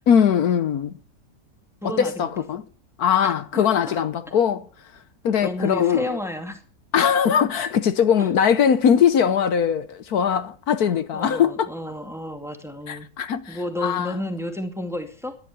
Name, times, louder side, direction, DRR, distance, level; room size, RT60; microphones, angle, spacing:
voice 1, 0.1-1.0 1.8-2.6 3.0-4.7 5.2-6.2 6.9-11.7 12.9-14.2, left 8 dB, 75° left, 1.4 m, -21 dB
voice 2, 1.8-2.3 3.2-4.0 4.3-4.4 5.4-6.6 8.2-8.3 10.8-13.1 13.5-15.4, left 1 dB, ahead, 2.3 m, -32 dB
14.0 x 11.0 x 7.0 m
omnidirectional pair, 1.6 m